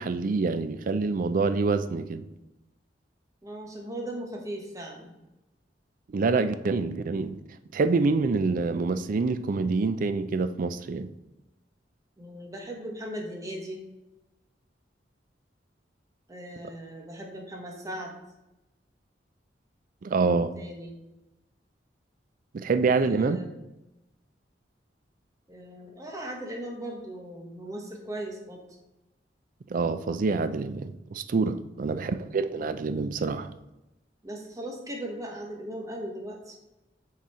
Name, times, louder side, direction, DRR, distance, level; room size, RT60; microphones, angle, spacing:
voice 1, 0.0-2.2 6.1-7.4 7.7-11.1 20.0-20.5 22.5-23.4 29.7-33.5, right 4 dB, 50° right, 11 dB, 0.4 m, -26 dB
voice 2, 3.4-5.1 12.2-13.8 16.3-18.1 20.2-20.9 22.9-23.5 25.5-28.6 31.8-32.2 34.2-36.5, right 1 dB, 20° right, 0 dB, 1.1 m, -38 dB
6.1 x 4.1 x 4.3 m, 0.98 s
head